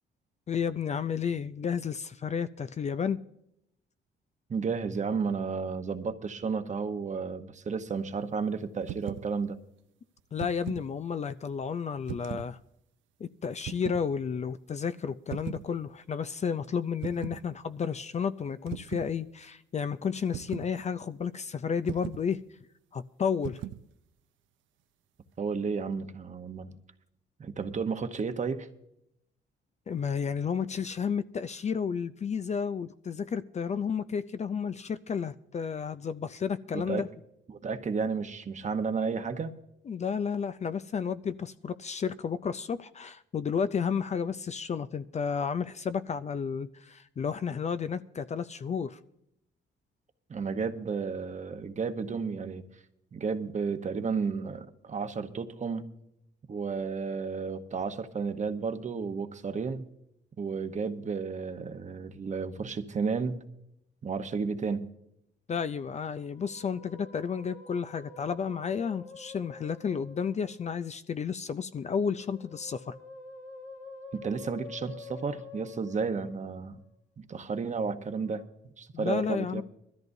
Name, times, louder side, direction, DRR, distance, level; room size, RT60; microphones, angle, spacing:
voice 1, 0.5-3.2 10.3-12.6 13.2-22.4 22.9-23.6 29.9-37.1 39.9-49.0 65.5-72.9 78.9-79.6, left 6 dB, 35° left, 0.4 m, -32 dB
voice 2, 4.5-9.6 25.4-26.8 27.4-28.7 36.7-37.0 37.5-39.5 50.3-52.7 53.1-55.8 56.5-59.9 60.4-63.4 64.0-64.9 74.1-76.8 77.2-78.4 78.8-79.6, right 5 dB, 35° right, 1.0 m, -32 dB
sound 1, 8.8-9.3 10.2-10.9 12.1-12.5 13.6-14.1 15.3-15.7 17.0-17.4 18.7-19.1 20.3-20.7 21.9-22.3 23.4-23.9, right 12 dB, 75° right, 0.5 m, -38 dB
Musical instrument, 66.1-70.8 72.1-76.9 78.0-78.4, left 4 dB, 85° left, 2.0 m, -48 dB
21.0 x 13.5 x 2.7 m
cardioid pair, 90°, 20 cm